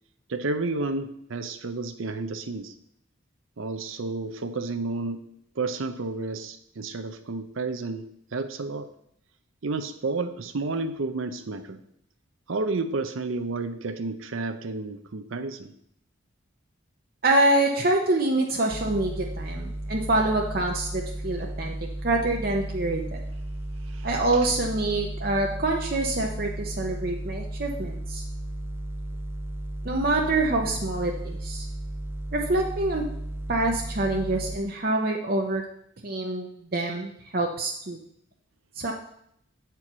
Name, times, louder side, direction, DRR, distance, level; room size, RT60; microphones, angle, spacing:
voice 1, 0.3-2.7 3.6-5.2 5.6-8.9 9.6-11.8 12.5-15.7 23.8-24.1, right 3 dB, 80° right, 8 dB, 0.6 m, -31 dB
voice 2, 17.2-21.7 22.0-23.2 24.0-28.2 29.8-31.7 32.3-33.0 33.5-35.6 36.0-38.0 38.8-38.9, right 2 dB, 45° right, 0 dB, 0.8 m, -26 dB
sound 1, 18.7-34.6, right 1 dB, 10° right, 0.4 m, -34 dB
8.2 x 4.5 x 6.0 m, 0.72 s
head